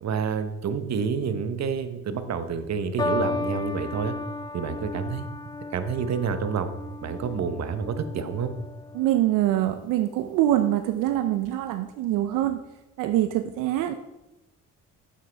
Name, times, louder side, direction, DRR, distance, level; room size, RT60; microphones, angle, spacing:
voice 1, 0.0-4.1 4.5-5.3 5.7-6.7 7.0-8.5, right 6 dB, 55° right, 9 dB, 0.9 m, -28 dB
sound 1, 3.0-9.5 10.4-10.8, left 3 dB, 15° left, 0.3 m, -34 dB
voice 2, 8.9-12.6 13.0-13.9, right 13 dB, 85° right, 8 dB, 0.5 m, -24 dB
8.3 x 7.5 x 3.4 m, 0.97 s
supercardioid pair, 70°, 31 cm